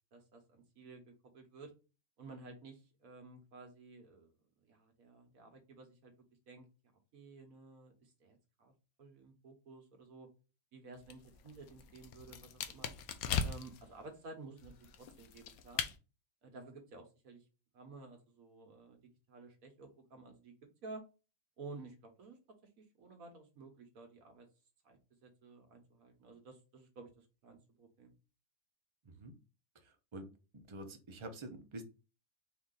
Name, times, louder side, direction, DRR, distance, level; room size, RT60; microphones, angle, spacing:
voice 1, 0.1-1.7 2.2-4.3 4.6-6.1 6.5-6.7 7.1-8.7 9.0-10.3 10.7-12.9 13.4-15.8 16.4-17.5 17.7-19.0 19.3-20.5 20.8-21.0 21.6-22.4 22.8-24.5 24.8-28.1, right 3 dB, 70° right, 4 dB, 1.5 m, -53 dB
sound 1, 11.0-13.9 14.6-16.0, left 7 dB, 80° left, 1.0 m, -39 dB
voice 2, 29.8-30.3 30.7-31.8, right 1 dB, 35° right, 5 dB, 0.5 m, -47 dB
4.5 x 2.7 x 3.8 m, 0.32 s
omnidirectional pair, 1.5 m